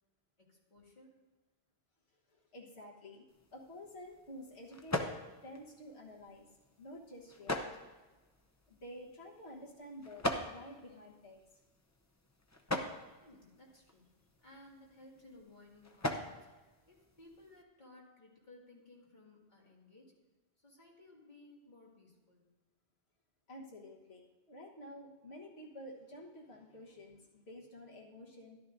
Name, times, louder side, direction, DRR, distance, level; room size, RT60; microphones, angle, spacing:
voice 1, 0.4-1.1 13.2-14.1 14.4-16.5 16.9-20.2 20.6-22.5, left 2 dB, 45° left, -3 dB, 2.4 m, -59 dB
voice 2, 2.3-3.2 3.5-5.2 5.4-6.5 6.8-7.7 8.7-11.4 23.5-28.6, left 1 dB, 75° left, -3 dB, 1.6 m, -51 dB
sound 1, 3.3-17.6, left 1 dB, 20° left, 0.6 m, -43 dB
14.0 x 12.0 x 2.6 m, 1.2 s
omnidirectional pair, 1.1 m